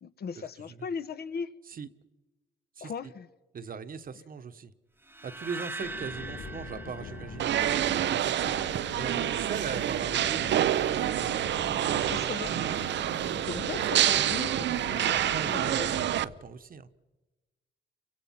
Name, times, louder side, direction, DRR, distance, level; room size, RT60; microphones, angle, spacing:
voice 1, 0.0-1.5 2.8-3.3 5.8-5.9 12.0-12.5 13.4-16.1, left 6 dB, 55° left, 1.2 m, -38 dB
voice 2, 2.8-3.1 3.5-4.7 5.2-8.5 8.9-12.3 14.9-16.9, right 6 dB, 45° right, 1.3 m, -40 dB
sound 1, 5.1-8.2, right 3 dB, 10° right, 1.0 m, -42 dB
sound 2, 5.8-16.2, left 3 dB, 90° left, 5.8 m, -43 dB
sound 3, 7.4-16.2, right 11 dB, 65° right, 0.7 m, -27 dB
29.5 x 24.5 x 5.9 m
cardioid pair, 90°, 20 cm